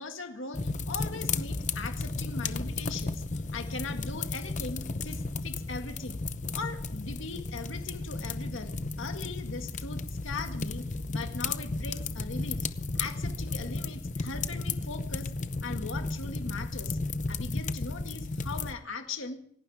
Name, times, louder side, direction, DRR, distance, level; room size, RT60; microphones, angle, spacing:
voice 1, 0.0-6.2 6.5-12.7 12.9-15.3 15.6-17.0 17.3-19.4, left 3 dB, 75° left, 5 dB, 1.9 m, -40 dB
sound 1, 0.5-18.7, left 3 dB, 35° left, 0.7 m, -34 dB
27.5 x 12.0 x 3.5 m, 0.64 s
head